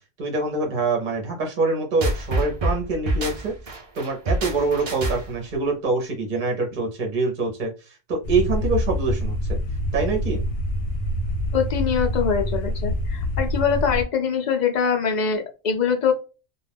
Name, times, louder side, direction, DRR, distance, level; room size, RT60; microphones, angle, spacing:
voice 1, 0.2-9.6 9.9-10.4, right 3 dB, 45° right, 1 dB, 0.7 m, -25 dB
sound 1, 2.0-5.5, right 1 dB, 70° right, 0.3 m, -26 dB
sound 2, 8.2-14.0, left 1 dB, 85° left, 1.0 m, -26 dB
voice 2, 11.5-16.1, left 6 dB, 60° left, 3 dB, 0.4 m, -23 dB
2.3 x 2.2 x 3.3 m, 0.32 s
omnidirectional pair, 1.4 m